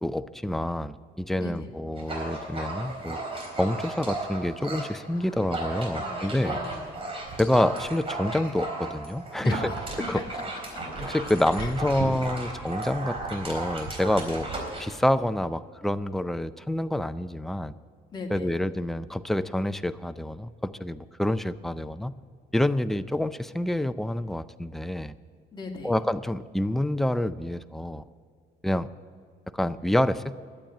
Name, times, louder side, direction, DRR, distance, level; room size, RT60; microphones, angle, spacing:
voice 1, 0.0-3.2 3.6-6.6 7.4-9.6 10.1-10.2 11.0-14.5 14.8-17.7 18.3-22.1 22.5-25.1 25.8-28.0 28.6-28.9 29.5-30.4, left 1 dB, ahead, 12 dB, 0.4 m, -27 dB
voice 2, 1.4-1.7 5.1-5.5 5.9-6.9 9.4-10.4 10.7-10.8 11.6-11.7 18.1-18.5 25.5-25.9, left 2 dB, 25° left, 0 dB, 2.3 m, -38 dB
Dog, 2.0-4.9 5.3-14.9, right 2 dB, 35° right, 3.9 m, -35 dB
12.0 x 8.7 x 8.8 m, 2.2 s
cardioid pair, 110°, 17 cm